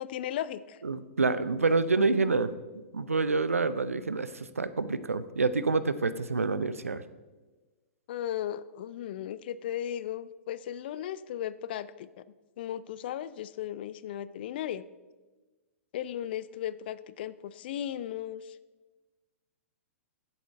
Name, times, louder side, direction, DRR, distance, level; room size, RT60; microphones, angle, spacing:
voice 1, 0.0-0.8 8.1-12.2 12.6-14.8 15.9-18.6, left 11 dB, 45° left, 16 dB, 0.3 m, -36 dB
voice 2, 0.8-2.5 2.9-7.0, right 3 dB, 75° right, 14 dB, 0.5 m, -27 dB
8.2 x 7.0 x 4.5 m, 1.2 s
figure-of-eight pair, 110°, 8 cm